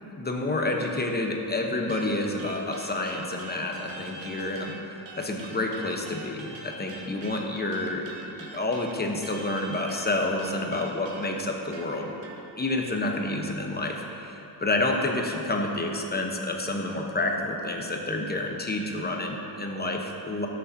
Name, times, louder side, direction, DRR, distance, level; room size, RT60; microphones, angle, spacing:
voice 1, 0.2-4.8 5.2-12.1 12.6-20.5, left 2 dB, 20° left, 1 dB, 0.9 m, -29 dB
sound 1, 1.9-4.8 5.1-12.4, right 3 dB, 75° right, 1.2 m, -44 dB
13.5 x 6.4 x 2.7 m, 3.0 s
cardioid pair, 100°, 46 cm